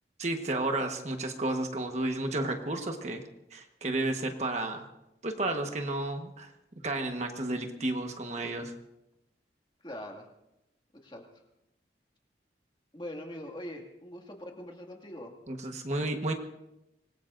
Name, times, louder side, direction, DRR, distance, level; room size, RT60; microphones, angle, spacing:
voice 1, 0.2-3.2 3.5-4.9 5.2-6.5 6.8-8.7 15.5-16.3, right 2 dB, 40° right, 4 dB, 1.2 m, -32 dB
voice 2, 9.8-10.3 11.0-11.4 12.9-15.3, left 1 dB, 25° left, 1 dB, 2.1 m, -42 dB
26.0 x 20.0 x 2.6 m, 0.89 s
head